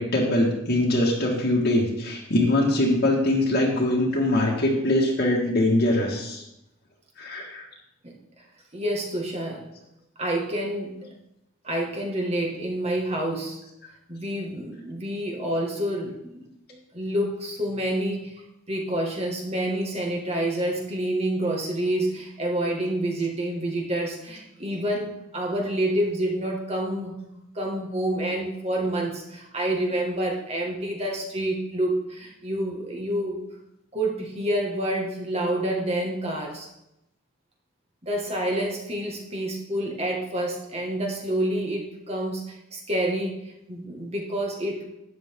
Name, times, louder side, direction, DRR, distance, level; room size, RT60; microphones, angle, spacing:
voice 1, 0.0-6.4 7.2-7.6, left 1 dB, 55° left, -3 dB, 1.8 m, -22 dB
voice 2, 8.7-9.7 10.2-11.1 11.6-13.6 14.1-16.4 16.9-18.3 18.7-33.4 33.9-36.7 38.0-44.8, right 1 dB, 30° right, 0 dB, 1.9 m, -28 dB
12.5 x 9.0 x 3.7 m, 0.88 s
head